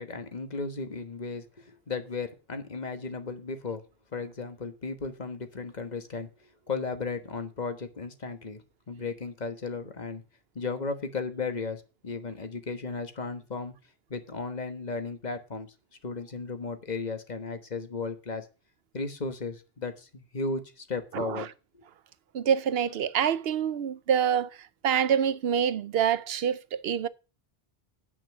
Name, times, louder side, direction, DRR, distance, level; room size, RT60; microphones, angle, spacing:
voice 1, 0.0-3.8 4.1-8.6 8.9-10.2 10.5-13.7 14.1-15.7 16.0-18.4 18.9-21.5, left 4 dB, 45° left, 1.5 m, -35 dB
voice 2, 21.1-21.4 22.3-24.5 24.8-27.1, right 8 dB, 75° right, 0.9 m, -26 dB
8.6 x 6.3 x 7.2 m
omnidirectional pair, 1.0 m